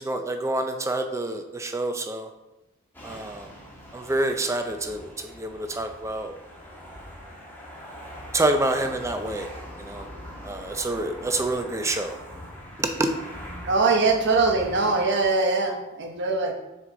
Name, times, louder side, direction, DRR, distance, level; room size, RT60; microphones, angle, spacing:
voice 1, 0.0-2.3 3.0-3.5 3.9-6.3 8.3-9.5 9.8-10.1 10.4-12.1 12.8-13.1, right 2 dB, 15° right, 6 dB, 0.5 m, -27 dB
sound 1, 2.9-15.3, equal, 10° left, 1.3 m, -42 dB
voice 2, 13.6-16.5, right 3 dB, 55° right, 3 dB, 1.0 m, -22 dB
6.6 x 4.7 x 3.9 m, 0.97 s
head